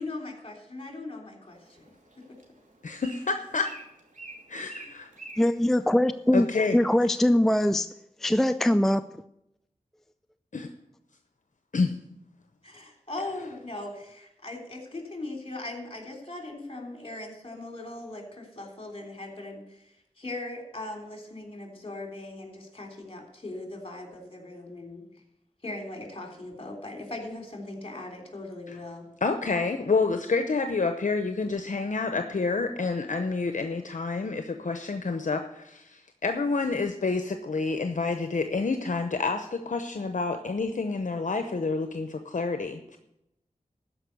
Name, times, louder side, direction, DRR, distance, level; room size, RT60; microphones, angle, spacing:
voice 1, 0.0-1.9 12.6-25.0 25.6-29.0, left 2 dB, 45° left, 2 dB, 3.3 m, -39 dB
Bird, 1.5-6.6, right 2 dB, 75° right, 2.7 m, -49 dB
voice 2, 2.8-3.7 4.5-5.1 6.3-6.8 10.5-10.7 11.7-12.0 28.7-28.8 29.2-43.0, left 4 dB, 70° left, 7 dB, 0.8 m, -28 dB
voice 3, 5.4-6.5 6.7-7.9 8.2-9.1, left 1 dB, ahead, 11 dB, 0.4 m, -22 dB
13.0 x 5.4 x 8.2 m, 0.83 s
wide cardioid pair, 50°, 13 cm